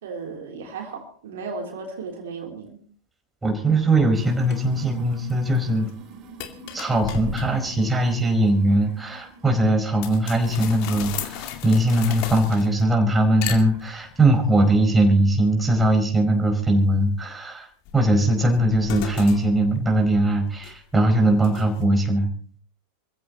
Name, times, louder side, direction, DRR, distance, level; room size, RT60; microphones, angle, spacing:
voice 1, 0.0-2.8, right 4 dB, 60° right, 2 dB, 3.3 m, -35 dB
voice 2, 3.4-5.9 6.7-17.7 17.9-22.3, right 1 dB, 10° right, 3 dB, 4.5 m, -20 dB
dead toilet flush, 4.1-10.6 10.8-11.4 12.1-12.2 13.1-13.2 13.7-14.0, right 4 dB, 35° right, 2.6 m, -44 dB
sound 1, 4.5-4.6 5.1-5.6 5.9-6.0 6.4-7.8 10.0-13.0 13.4-14.2 17.9-21.0 21.4-21.8, left 10 dB, 45° left, 2.3 m, -35 dB
27.5 x 15.5 x 2.9 m, 0.42 s
figure-of-eight pair, 90°, 0 cm